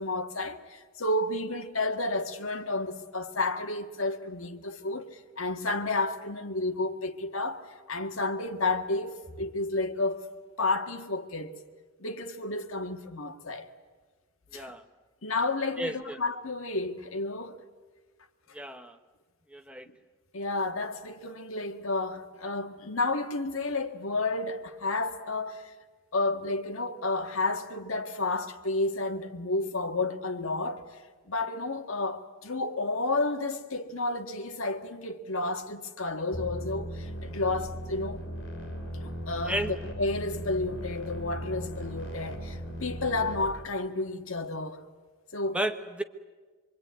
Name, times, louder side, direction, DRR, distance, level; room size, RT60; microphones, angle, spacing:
voice 1, 0.0-10.3 10.6-11.6 12.0-13.7 14.5-14.7 15.2-17.6 20.3-25.7 26.1-30.9 31.3-38.2 39.0-44.8 45.3-45.6, left 2 dB, 85° left, 1.8 m, -31 dB
voice 2, 14.5-14.8 15.8-16.2 18.5-19.0 19.5-19.9 39.5-39.7 45.5-46.0, right 1 dB, 5° right, 1.3 m, -32 dB
sound 1, 36.3-43.4, equal, 60° left, 6.7 m, -38 dB
25.5 x 24.0 x 9.5 m
head